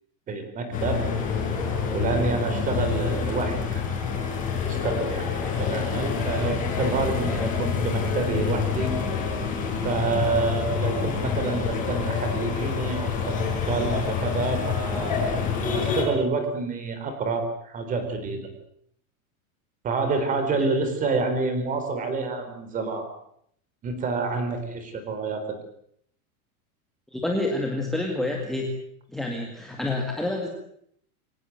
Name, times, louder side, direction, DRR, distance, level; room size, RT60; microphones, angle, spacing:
voice 1, 0.3-1.0 1.9-3.8 4.2-4.3 4.6-5.3 5.6-9.0 9.8-15.3 15.7-18.5 19.8-23.1 23.8-25.4, right 3 dB, 20° right, 8 dB, 4.4 m, -28 dB
sound 1, 0.7-16.0, left 6 dB, 20° left, 6.8 m, -27 dB
voice 2, 27.1-28.7 29.1-30.5, left 2 dB, ahead, 0 dB, 2.1 m, -28 dB
25.0 x 18.5 x 9.5 m, 0.70 s
supercardioid pair, 180°, 43 cm